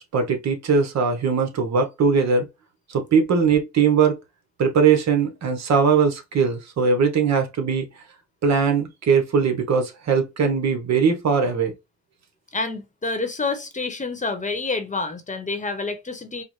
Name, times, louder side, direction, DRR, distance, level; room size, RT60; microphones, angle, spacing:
voice 1, 0.1-2.5 2.9-4.2 4.6-7.9 8.4-11.7, right 5 dB, 60° right, 1.1 m, -20 dB
voice 2, 12.5-16.4, left 3 dB, 25° left, 1.0 m, -28 dB
4.6 x 2.2 x 3.1 m
cardioid pair, 90°, 30 cm